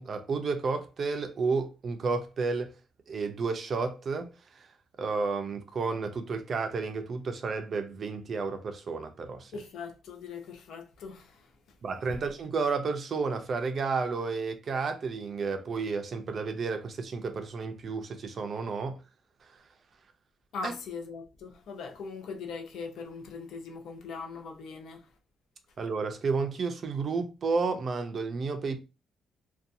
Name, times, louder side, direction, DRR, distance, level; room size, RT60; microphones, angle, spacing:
voice 1, 0.0-2.7 3.1-4.7 5.0-9.5 11.8-19.0 20.6-20.7 25.8-28.8, right 4 dB, 40° right, 0.4 m, -31 dB
voice 2, 9.5-11.8 12.1-12.2 20.5-25.1, left 5 dB, 70° left, 0.5 m, -41 dB
2.6 x 2.2 x 2.5 m
cardioid pair, 155°, 0 cm